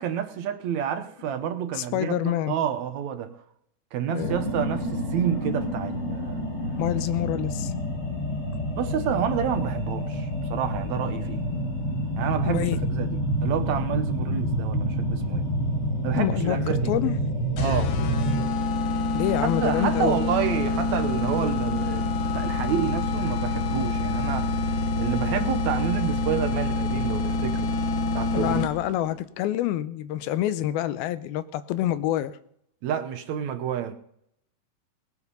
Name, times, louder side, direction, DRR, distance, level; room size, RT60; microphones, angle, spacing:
voice 1, 0.0-3.3 3.9-6.4 8.7-11.5 12.2-15.4 16.0-16.9 17.6-17.9 19.4-24.7 25.0-27.7 28.1-28.6 32.8-33.9, right 8 dB, 70° right, 8 dB, 1.8 m, -29 dB
voice 2, 1.7-2.6 4.1-4.4 6.8-7.7 12.5-12.8 16.2-16.6 16.9-17.2 19.1-20.2 28.3-32.4, left 13 dB, 90° left, 14 dB, 2.6 m, -27 dB
sound 1, 4.2-18.5, equal, 40° left, 4.6 m, -28 dB
sound 2, 17.6-29.0, left 2 dB, 65° left, 2.3 m, -26 dB
19.0 x 8.5 x 5.4 m, 0.71 s
omnidirectional pair, 4.2 m